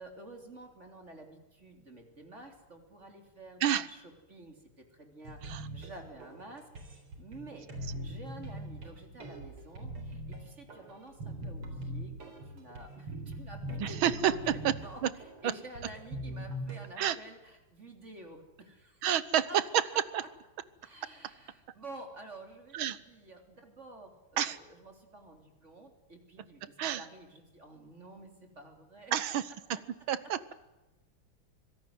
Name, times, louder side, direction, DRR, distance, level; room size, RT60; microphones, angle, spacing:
voice 1, 0.0-7.7 8.0-19.1 19.5-19.6 19.9-20.0 20.8-29.1 29.7-29.8, right 2 dB, 30° right, 4 dB, 3.7 m, -50 dB
sound 1, 5.2-16.8, right 1 dB, 90° right, 4.9 m, -42 dB
voice 2, 13.8-14.3 14.6-14.7 15.0-15.1 17.0-17.2 19.0-19.8 20.1-20.2 22.7-23.0 24.4-24.6 26.8-27.0 29.1-29.4 30.1-30.5, right 10 dB, 70° right, 16 dB, 1.8 m, -29 dB
25.0 x 17.5 x 9.5 m, 1.0 s
omnidirectional pair, 2.4 m